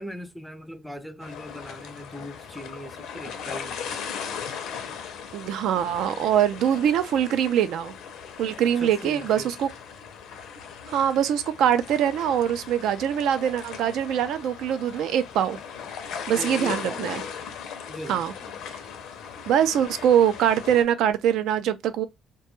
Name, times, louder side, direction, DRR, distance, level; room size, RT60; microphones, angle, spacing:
voice 1, 0.0-4.0 8.8-9.5 16.4-17.0 17.9-18.2, equal, 5° right, 0.4 m, -39 dB
sound 1, 1.2-20.8, left 7 dB, 75° left, 0.5 m, -38 dB
voice 2, 5.3-7.9 8.4-9.7 10.9-15.6 16.3-17.2 18.1-18.3 19.5-22.1, right 9 dB, 75° right, 0.3 m, -23 dB
2.2 x 2.1 x 2.9 m
cardioid pair, 125°, 0 cm